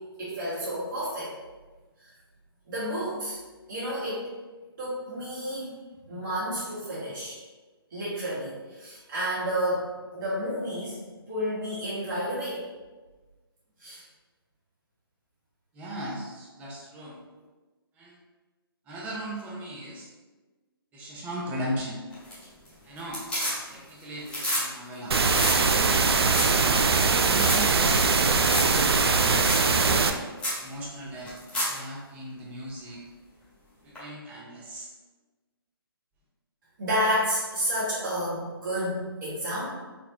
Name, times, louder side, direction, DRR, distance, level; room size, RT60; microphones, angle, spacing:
voice 1, 0.2-1.3 2.0-2.1 2.7-3.4 3.7-4.3 4.8-5.7 6.1-7.4 7.9-11.0 11.3-12.6 13.8-14.0 36.8-39.7, equal, 55° right, -10 dB, 1.4 m, -30 dB
voice 2, 15.7-17.2 18.0-18.2 18.9-20.1 20.9-22.0 22.8-25.2 26.0-26.7 27.2-29.7 30.6-31.3 31.7-33.0 33.8-34.9, right 1 dB, 10° right, -3 dB, 0.5 m, -38 dB
sound 1, 22.1-22.7 23.0-23.9 24.2-24.6 24.9-25.0 25.3-25.6 26.0-26.1 26.3-26.6 26.9-27.0 27.3-27.6 28.4-28.8 29.0-29.1 29.4-29.7 30.0-30.1 30.4-30.6 31.3-31.8 34.0-34.1, equal, 10° left, 1.2 m, -29 dB
sound 2, 25.1-30.1, right 4 dB, 85° right, 0.4 m, -22 dB
4.1 x 2.2 x 2.8 m, 1.3 s
figure-of-eight pair, 145°, 13 cm